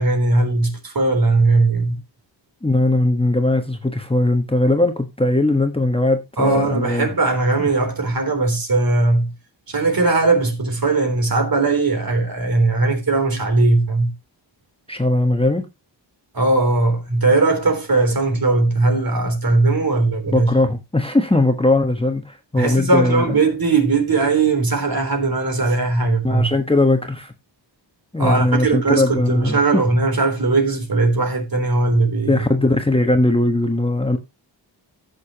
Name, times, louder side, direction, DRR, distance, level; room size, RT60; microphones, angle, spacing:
voice 1, 0.0-2.0 6.4-9.3 9.7-14.1 16.3-20.5 22.6-26.5 28.2-32.5, right 3 dB, 50° right, 3.7 m, -19 dB
voice 2, 2.6-7.1 7.6-7.7 14.9-15.6 20.3-23.2 26.2-27.3 28.1-29.8 32.3-34.2, left 2 dB, 10° left, 1.3 m, -19 dB
15.5 x 6.6 x 3.0 m
wide cardioid pair, 85°, 45 cm